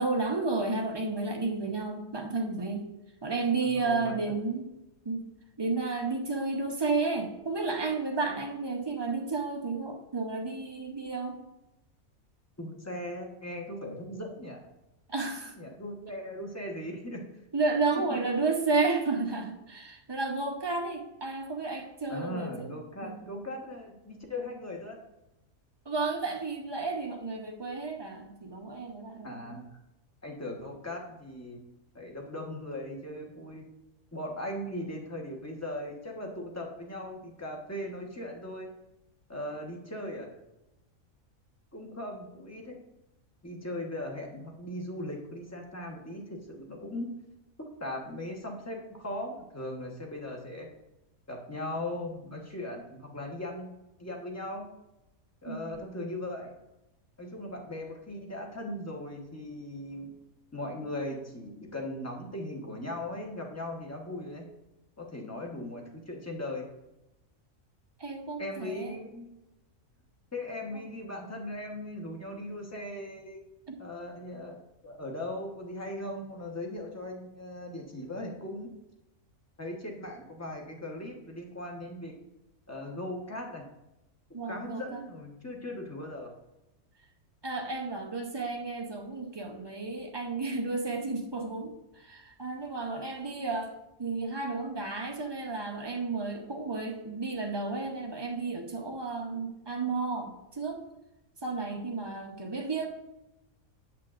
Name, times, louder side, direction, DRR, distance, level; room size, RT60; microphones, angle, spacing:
voice 1, 0.0-2.9 3.2-4.7 5.0-5.3 5.6-11.4 15.1-15.5 17.5-22.7 23.0-23.2 25.8-29.4 55.4-55.7 68.0-69.0 73.7-73.8 84.3-85.0 87.4-93.7 94.0-100.9 101.4-102.9, right 3 dB, 30° right, 2 dB, 0.5 m, -32 dB
voice 2, 3.6-4.3 12.6-14.7 15.6-17.4 17.9-18.2 22.1-25.0 29.2-29.8 30.2-31.6 31.9-33.7 34.1-38.7 39.3-40.3 41.7-42.8 43.4-47.1 47.8-50.7 51.3-53.7 54.0-54.7 55.4-56.5 57.2-60.2 60.5-64.5 65.0-66.6 68.4-69.3 70.3-73.4 73.8-78.7 79.6-82.1 82.7-83.7 84.5-86.3, left 1 dB, 15° left, 0 dB, 0.9 m, -38 dB
8.7 x 7.6 x 2.5 m, 0.92 s
omnidirectional pair, 1.5 m